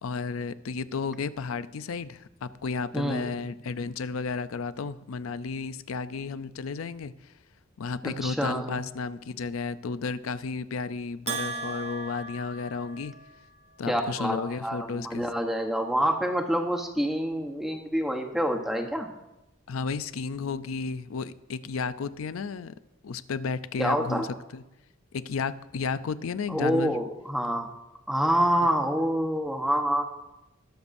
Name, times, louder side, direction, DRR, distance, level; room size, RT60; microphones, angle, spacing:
voice 1, 0.0-7.3 7.8-13.1 13.8-15.3 19.7-22.7 23.0-24.3 24.5-24.6 25.1-27.0, left 4 dB, 90° left, 14 dB, 0.5 m, -33 dB
voice 2, 2.9-3.3 8.0-8.8 13.9-19.1 23.8-24.2 26.5-27.7 28.1-30.0, equal, ahead, 2 dB, 1.0 m, -27 dB
Bell, 11.3-13.4, right 3 dB, 30° right, 0.7 m, -36 dB
20.5 x 6.9 x 2.6 m, 0.94 s
head